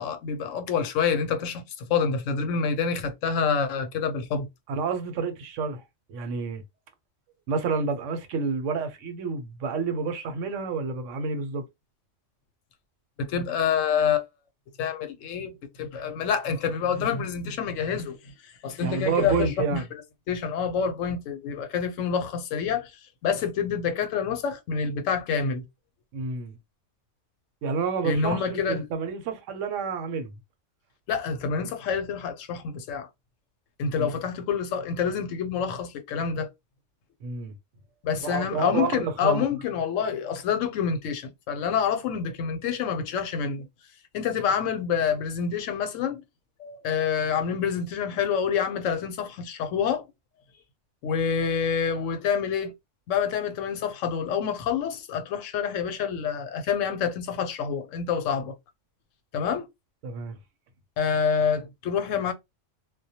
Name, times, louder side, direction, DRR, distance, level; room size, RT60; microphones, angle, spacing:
voice 1, 0.0-4.5 13.2-14.3 14.8-15.5 15.8-18.2 18.6-19.8 20.3-22.9 23.2-25.6 28.0-28.8 31.1-33.1 33.8-36.5 38.0-43.6 44.1-46.2 46.6-50.0 51.0-52.7 53.1-58.5 59.3-59.7 61.0-62.3, left 6 dB, 85° left, 0.9 m, -27 dB
voice 2, 4.7-5.8 6.1-6.6 7.5-11.6 18.8-19.8 26.1-26.5 27.6-30.4 34.0-34.2 37.2-37.5 38.2-39.4 60.0-60.4, right 5 dB, 80° right, 1.0 m, -29 dB
2.2 x 2.1 x 2.7 m
omnidirectional pair, 1.3 m